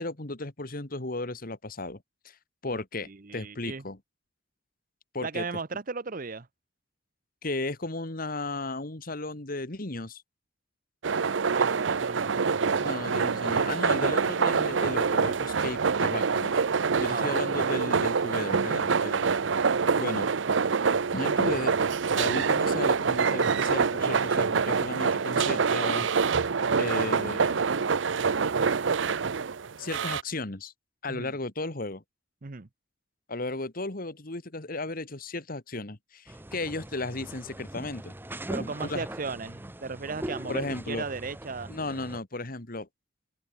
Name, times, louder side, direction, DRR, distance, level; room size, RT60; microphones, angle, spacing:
voice 1, 0.0-2.4 2.6-4.0 5.1-5.5 7.4-10.2 12.8-19.4 20.0-20.3 21.1-26.1 26.8-27.8 29.8-30.7 31.0-32.0 33.3-38.1 38.6-39.1 40.5-41.1 41.7-42.9, left 2 dB, 50° left, 2.0 m, -35 dB
voice 2, 2.7-3.8 5.2-6.5 11.5-13.0 17.1-17.4 20.0-20.2 31.1-31.4 32.4-32.7 38.5-41.7, right 4 dB, 45° right, 0.9 m, -37 dB
sound 1, 11.0-30.2, right 5 dB, 80° right, 0.7 m, -26 dB
sound 2, 36.3-42.2, right 1 dB, 10° right, 0.9 m, -40 dB
head